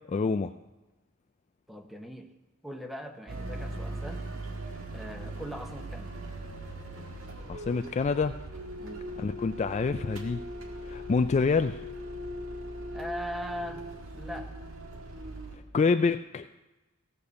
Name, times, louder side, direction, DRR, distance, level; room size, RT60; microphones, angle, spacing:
voice 1, 0.1-0.5 7.5-8.3 9.2-10.4 10.9-11.8 15.7-16.5, left 4 dB, 35° left, 9 dB, 0.3 m, -26 dB
voice 2, 1.7-2.3 2.6-4.2 4.9-6.2 8.8-9.0 12.9-13.9 14.1-14.7, left 1 dB, ahead, 4 dB, 1.0 m, -40 dB
sound 1, 3.3-15.6, right 1 dB, 80° right, 1.8 m, -40 dB
16.5 x 6.8 x 6.8 m, 1.1 s
head